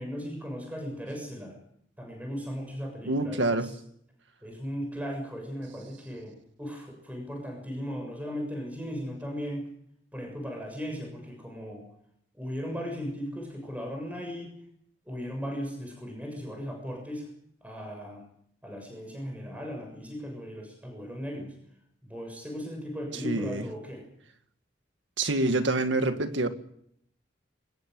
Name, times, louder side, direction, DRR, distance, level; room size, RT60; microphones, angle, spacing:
voice 1, 0.0-1.6 2.0-3.7 4.4-9.7 10.1-11.8 12.3-14.6 15.1-17.3 17.6-18.2 18.6-21.6 22.0-24.1, equal, 10° right, 6.9 m, -37 dB
voice 2, 3.0-3.7 23.1-23.7 25.2-26.5, right 2 dB, 85° right, 2.0 m, -26 dB
23.5 x 20.5 x 7.9 m
head